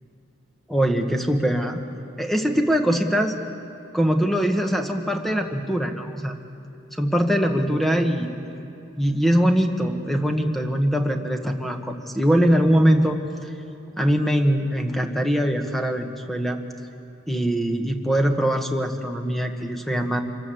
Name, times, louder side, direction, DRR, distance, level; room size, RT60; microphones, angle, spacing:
voice 1, 0.7-1.8 2.2-3.4 3.9-6.3 7.0-8.3 9.0-13.5 14.0-16.6 17.3-20.2, equal, ahead, 4 dB, 1.5 m, -22 dB
26.5 x 19.5 x 7.8 m, 2.8 s
head